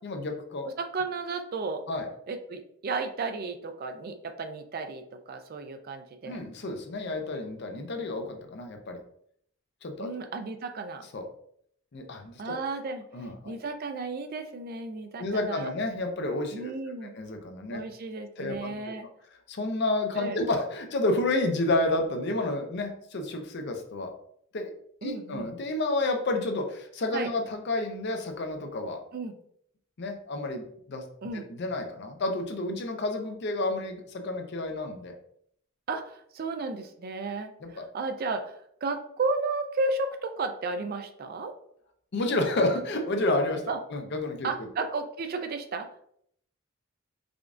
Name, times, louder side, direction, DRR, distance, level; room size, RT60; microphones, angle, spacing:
voice 1, 0.0-0.7 1.9-2.1 6.3-9.0 9.8-10.1 11.1-11.2 11.9-12.6 13.1-13.5 15.2-16.7 17.1-17.8 18.4-18.7 19.5-24.1 24.5-24.7 25.0-29.0 30.0-31.0 31.5-35.1 37.6-37.8 42.1-44.7, left 2 dB, 50° left, 4 dB, 0.5 m, -30 dB
voice 2, 0.6-1.8 2.3-6.4 10.0-11.1 12.4-15.7 16.5-17.2 17.7-19.1 20.2-20.4 25.0-25.5 27.1-27.3 29.1-29.3 31.2-31.4 35.9-41.5 43.7-43.8 44.4-46.0, right 3 dB, 45° right, 7 dB, 0.4 m, -33 dB
5.0 x 2.4 x 2.5 m, 0.68 s
head